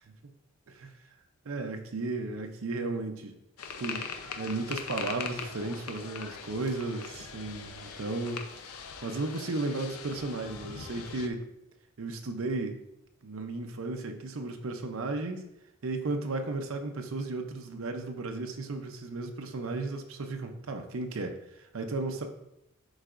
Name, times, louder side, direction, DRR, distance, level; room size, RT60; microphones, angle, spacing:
voice 1, 1.4-3.3 3.8-4.1 4.4-8.4 9.0-11.4 12.0-12.8 13.2-15.5 15.8-22.3, right 2 dB, 70° right, 5 dB, 0.6 m, -34 dB
sound 1, 3.6-11.3, left 6 dB, 85° left, 0.6 m, -41 dB
11.0 x 4.0 x 2.5 m, 0.84 s
head